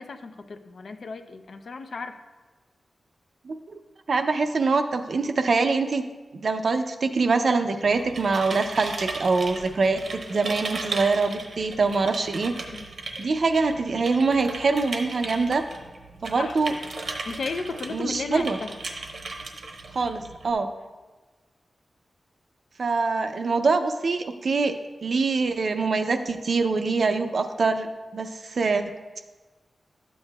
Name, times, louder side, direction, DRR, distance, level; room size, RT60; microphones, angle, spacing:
voice 1, 0.0-2.2 12.7-12.9 16.4-16.6 17.3-18.8, left 4 dB, 60° left, 7 dB, 0.5 m, -34 dB
voice 2, 4.1-6.0 6.3-12.5 13.2-15.6 16.2-16.7 17.9-18.6 19.9-20.7 22.8-24.7 25.0-28.8, right 4 dB, 55° right, 7 dB, 0.5 m, -24 dB
sound 1, 7.8-20.5, right 3 dB, 75° right, 0.9 m, -36 dB
12.5 x 8.2 x 2.3 m, 1.3 s
wide cardioid pair, 175°, 0 cm